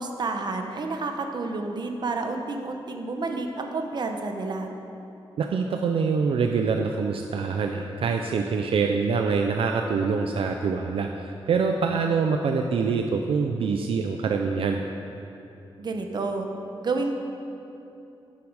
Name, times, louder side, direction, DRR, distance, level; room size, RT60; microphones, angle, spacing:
voice 1, 0.0-4.7 15.8-16.5 16.8-17.1, right 3 dB, 50° right, 4 dB, 0.8 m, -30 dB
voice 2, 5.4-14.8, right 5 dB, 70° right, 4 dB, 0.5 m, -25 dB
11.5 x 6.9 x 4.8 m, 2.9 s
wide cardioid pair, 160°, 10 cm